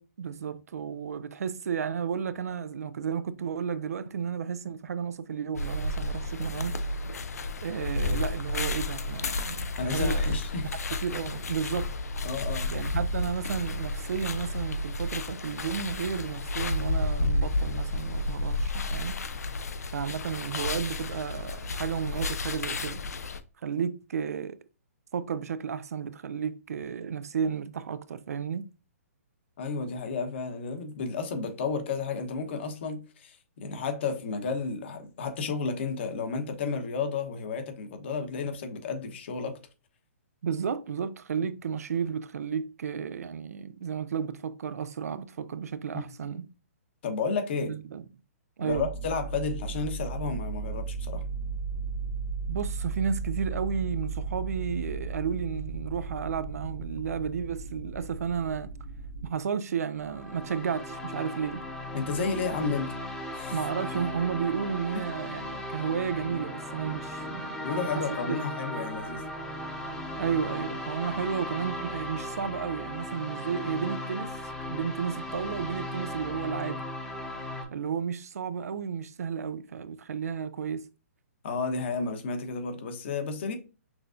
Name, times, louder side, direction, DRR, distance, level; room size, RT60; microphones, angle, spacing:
voice 1, 0.0-6.8 7.6-10.3 10.9-11.9 12.7-19.1 19.9-23.0 23.6-24.6 25.1-28.7 40.4-46.5 47.6-48.0 48.6-48.9 52.5-58.7 59.2-61.7 63.5-67.9 68.2-68.5 70.2-74.4 74.7-76.8 77.7-80.9, right 7 dB, 80° right, 0.4 m, -33 dB
sound 1, 5.5-23.4, left 2 dB, 90° left, 0.5 m, -31 dB
voice 2, 9.8-10.7 12.2-12.7 29.6-39.6 47.0-47.7 48.6-51.2 61.9-62.9 63.3-63.5 64.9-65.0 67.6-69.2 81.4-83.5, left 4 dB, 45° left, 1.0 m, -32 dB
sound 2, 48.7-59.3, right 4 dB, 15° right, 1.0 m, -35 dB
sound 3, 60.0-77.6, left 1 dB, 5° left, 0.7 m, -37 dB
6.0 x 2.3 x 2.6 m
hypercardioid pair, 155°, 8 cm